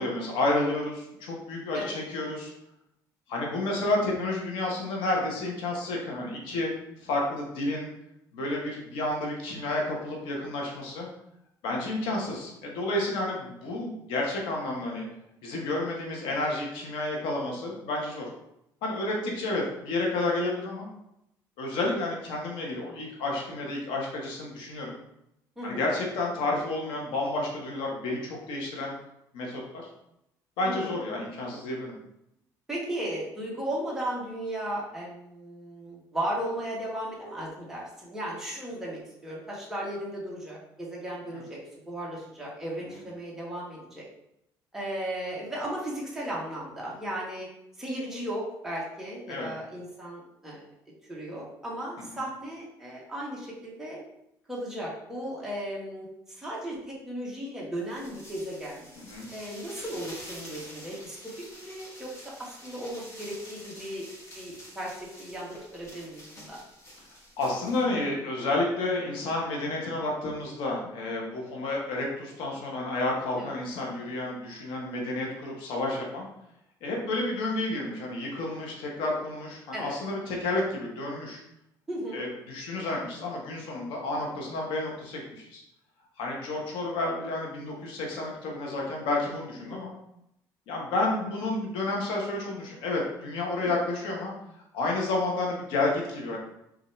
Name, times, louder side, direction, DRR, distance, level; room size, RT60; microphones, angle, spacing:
voice 1, 0.0-2.5 3.3-6.7 7.0-7.9 8.3-11.1 11.6-15.1 15.4-18.3 18.8-20.9 21.6-25.0 25.6-29.0 29.3-29.6 30.6-32.0 41.3-41.4 42.9-43.0 49.3-49.5 52.1-52.2 59.0-59.3 67.4-76.3 76.8-81.4 82.1-85.6 86.2-89.9 90.7-94.3 94.7-96.4, left 2 dB, 90° left, -1 dB, 1.3 m, -30 dB
voice 2, 30.6-30.9 32.7-41.6 41.8-44.0 44.7-47.5 47.8-50.6 51.1-54.0 54.5-58.9 59.3-61.2 61.6-64.1 64.3-66.6 73.4-73.5 79.7-80.0 81.9-82.2 89.6-89.8 93.6-93.8, right 1 dB, 5° right, -5 dB, 1.4 m, -36 dB
sound 1, 57.8-67.9, equal, 35° left, 1.5 m, -47 dB
5.0 x 2.8 x 3.3 m, 0.81 s
cardioid pair, 130°, 8 cm